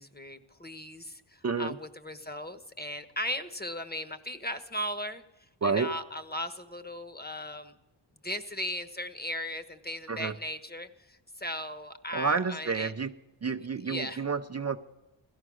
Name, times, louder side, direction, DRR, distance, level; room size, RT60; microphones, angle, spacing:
voice 1, 0.0-5.2 5.6-7.7 8.2-12.9 13.9-14.2, left 1 dB, 20° left, 11 dB, 1.3 m, -37 dB
voice 2, 1.4-1.8 5.6-5.9 10.1-10.3 12.1-13.1 13.4-14.8, right 5 dB, 35° right, 7 dB, 0.7 m, -29 dB
17.0 x 13.5 x 6.3 m, 1.0 s
cardioid pair, 55°, 47 cm